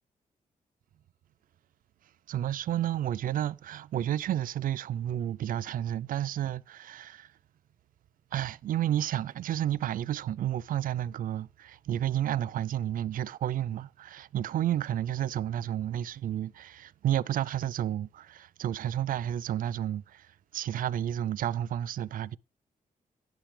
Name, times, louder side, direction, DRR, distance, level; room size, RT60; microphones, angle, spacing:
voice 1, 2.3-7.3 8.3-22.4, right 11 dB, 75° right, 0.4 m, -31 dB
10.5 x 10.0 x 3.3 m
wide cardioid pair, 175°, 14 cm